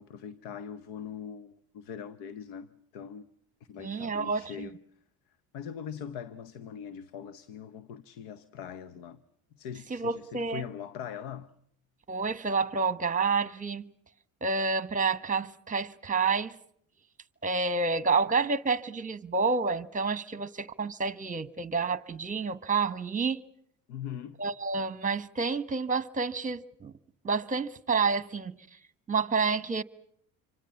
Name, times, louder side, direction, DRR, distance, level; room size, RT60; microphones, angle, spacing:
voice 1, 0.0-3.3 3.6-4.8 5.5-9.2 9.5-11.5 23.9-24.4, left 8 dB, 85° left, 1.1 m, -41 dB
voice 2, 3.8-4.7 9.9-10.6 12.1-13.8 14.4-16.6 17.4-23.4 24.4-26.9 27.2-28.6 29.1-29.8, right 4 dB, 20° right, 1.3 m, -29 dB
27.5 x 25.0 x 7.2 m
supercardioid pair, 90°, 39 cm